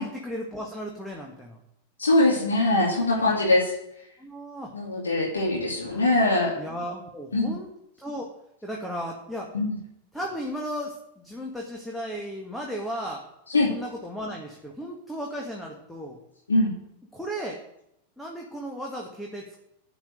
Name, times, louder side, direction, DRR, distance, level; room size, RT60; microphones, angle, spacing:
voice 1, 0.0-1.6 4.2-4.7 5.9-6.0 6.5-7.7 8.0-8.3 8.6-9.5 10.1-13.2 13.7-16.2 17.1-17.6 18.2-19.6, equal, 5° left, -1 dB, 1.7 m, -35 dB
voice 2, 2.0-3.7 4.7-6.5 7.3-7.5 9.5-9.8 13.5-13.7 16.5-16.7, left 2 dB, 75° left, -3 dB, 2.3 m, -22 dB
11.0 x 5.3 x 7.8 m, 0.81 s
figure-of-eight pair, 90°, 0 cm